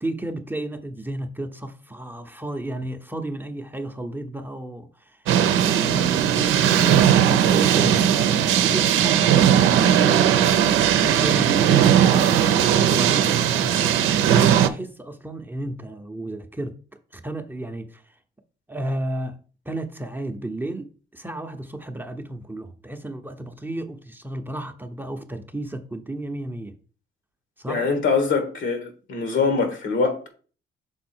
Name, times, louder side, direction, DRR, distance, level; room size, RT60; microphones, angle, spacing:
voice 1, 0.0-9.4 11.0-12.3 12.9-13.9 14.3-16.7 17.1-18.0 18.7-19.4 19.7-26.7 27.6-27.9, right 1 dB, 10° right, 0.7 m, -33 dB
sound 1, 5.3-14.7, right 9 dB, 90° right, 0.6 m, -18 dB
voice 2, 27.7-30.3, left 4 dB, 75° left, 1.8 m, -23 dB
6.3 x 3.8 x 4.4 m
cardioid pair, 90°, 20 cm